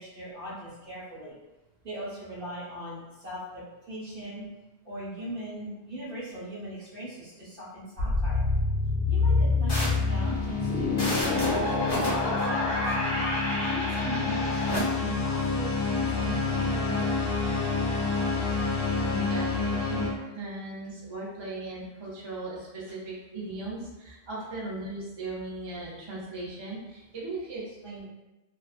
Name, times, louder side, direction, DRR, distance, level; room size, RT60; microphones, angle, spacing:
voice 1, 0.0-1.4 1.8-4.5 4.8-8.4 9.1-12.9 13.6-17.1, right 1 dB, 55° right, -8 dB, 1.1 m, -40 dB
sound 1, 8.0-20.1, left 3 dB, 75° left, 0.9 m, -27 dB
sound 2, 9.7-14.8, left 1 dB, 25° left, 0.9 m, -33 dB
voice 2, 18.9-28.1, right 2 dB, 35° right, -7 dB, 0.5 m, -38 dB
2.4 x 2.2 x 2.3 m, 1.0 s
omnidirectional pair, 1.1 m